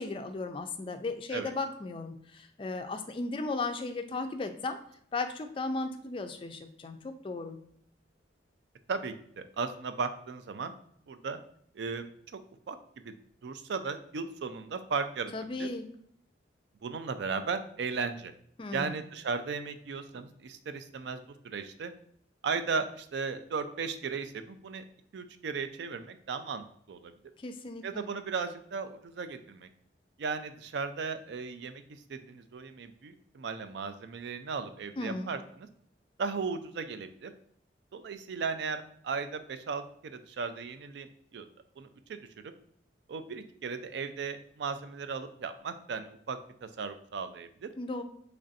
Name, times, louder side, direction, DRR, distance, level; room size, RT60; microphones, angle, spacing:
voice 1, 0.0-4.8 5.1-7.6 15.3-15.9 18.6-19.0 27.4-28.1 35.0-35.3 47.8-48.0, left 3 dB, 30° left, 7 dB, 0.3 m, -36 dB
voice 2, 8.9-10.7 11.1-11.4 11.7-12.4 12.7-13.2 13.4-15.7 16.8-18.3 18.7-21.9 22.4-24.8 25.1-27.1 27.8-29.7 30.2-35.7 36.2-37.3 37.9-41.5 41.8-42.2 43.1-47.7, right 5 dB, 70° right, 10 dB, 0.4 m, -36 dB
3.2 x 2.5 x 3.9 m, 0.67 s
head